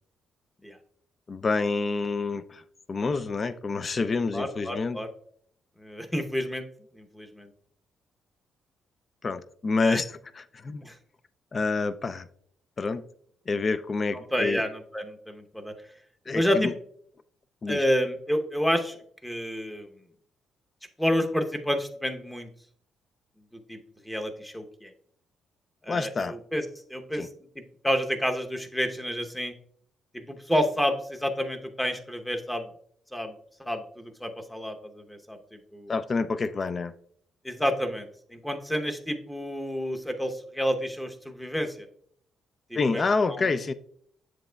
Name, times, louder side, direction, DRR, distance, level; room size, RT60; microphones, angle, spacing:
voice 1, 1.3-2.6 2.9-5.0 9.2-10.8 11.5-12.3 12.8-13.0 13.5-14.6 16.3-16.7 17.6-17.8 25.9-26.4 27.2-27.3 35.9-36.9 42.7-43.7, left 4 dB, 35° left, 0.4 m, -28 dB
voice 2, 4.3-5.1 5.8-6.6 6.9-7.5 9.8-10.0 10.8-11.0 14.1-15.7 16.3-16.7 17.7-19.0 19.2-19.9 21.0-22.5 23.5-23.8 24.0-24.9 25.8-27.3 27.6-29.5 30.1-32.7 33.1-36.0 37.4-41.9 42.7-43.5, equal, 5° left, 0.9 m, -30 dB
7.6 x 7.2 x 2.2 m
cardioid pair, 90°, 0 cm